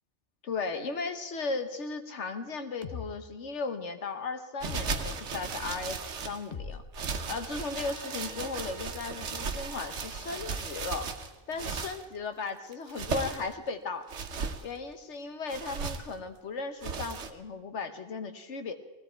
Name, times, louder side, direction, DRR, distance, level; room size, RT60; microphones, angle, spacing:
voice 1, 0.4-6.8 7.3-11.1 11.5-14.1 14.6-18.7, left 4 dB, 80° left, 8 dB, 1.4 m, -36 dB
sound 1, 2.8-3.1 4.7-5.2 6.5-7.7, left 5 dB, 40° left, 1.0 m, -41 dB
sound 2, 4.6-6.4 6.9-12.0 12.7-13.5 14.1-14.6 15.5-16.1 16.8-17.3, right 5 dB, 90° right, 1.3 m, -36 dB
Trumpet, 7.7-10.1, right 2 dB, 5° right, 1.6 m, -53 dB
20.0 x 16.0 x 4.5 m, 1.2 s
omnidirectional pair, 1.2 m